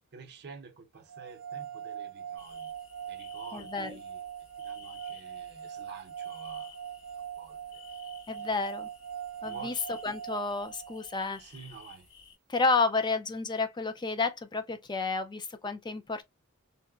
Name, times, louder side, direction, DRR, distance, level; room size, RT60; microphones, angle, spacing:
voice 1, 0.1-2.7 3.1-4.2 4.6-6.8 7.4-7.8 8.3-8.5 9.4-9.8 11.4-12.1, right 5 dB, 50° right, 0.7 m, -49 dB
sound 1, 1.1-11.2, right 9 dB, 85° right, 0.5 m, -42 dB
sound 2, 2.4-12.4, left 7 dB, 60° left, 2.1 m, -55 dB
voice 2, 3.5-3.9 8.3-8.9 9.4-9.7 10.0-11.4 12.5-16.2, left 3 dB, 20° left, 0.4 m, -30 dB
3.8 x 2.1 x 2.3 m
head